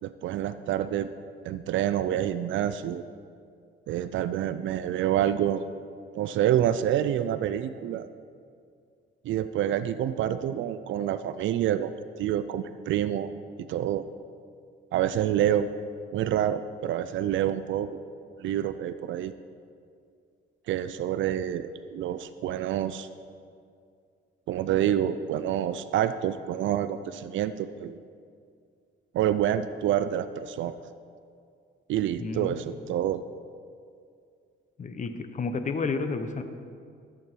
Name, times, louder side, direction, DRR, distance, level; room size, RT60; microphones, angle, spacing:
voice 1, 0.0-1.1 1.5-3.1 3.9-5.6 6.1-8.1 9.2-11.9 12.2-13.3 13.7-14.1 14.9-15.7 16.1-18.0 18.4-19.3 20.7-23.1 24.5-28.0 29.1-30.8 31.9-33.2, right 11 dB, 75° right, 13 dB, 0.4 m, -27 dB
voice 2, 32.2-32.6 34.8-36.4, left 4 dB, 40° left, 8 dB, 1.0 m, -31 dB
14.0 x 8.4 x 4.5 m, 2.3 s
cardioid pair, 90°, 20 cm